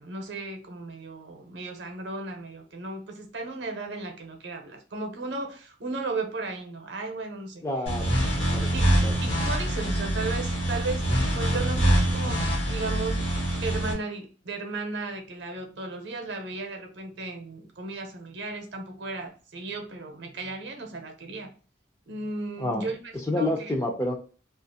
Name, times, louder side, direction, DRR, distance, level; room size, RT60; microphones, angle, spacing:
voice 1, 0.0-7.6 8.2-9.0 9.2-11.1 11.3-12.4 12.7-13.3 13.6-21.5 22.1-23.7, right 3 dB, 65° right, 4 dB, 0.7 m, -35 dB
voice 2, 7.6-8.1 8.5-8.7 9.0-9.1 22.6-22.8 23.3-24.2, left 1 dB, 15° left, 3 dB, 0.4 m, -28 dB
sound 1, 7.9-13.9, right 1 dB, 85° left, 1.1 m, -25 dB
2.4 x 2.4 x 2.7 m, 0.37 s
head